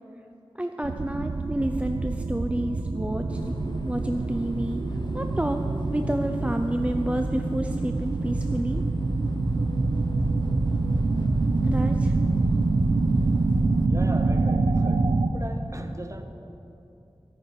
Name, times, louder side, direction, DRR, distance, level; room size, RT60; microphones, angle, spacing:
voice 1, 0.6-3.6 3.8-4.8 5.1-5.6 5.9-8.8 11.6-12.2, right 1 dB, 10° right, 5 dB, 0.5 m, -29 dB
sound 1, 0.8-15.3, right 3 dB, 80° right, 0.7 m, -25 dB
sound 2, 3.3-13.9, left 1 dB, 45° left, 1.0 m, -41 dB
voice 2, 13.9-15.1 15.3-16.2, right 1 dB, 30° right, 7 dB, 1.0 m, -38 dB
13.5 x 12.5 x 5.3 m, 2.9 s
wide cardioid pair, 50°, 10 cm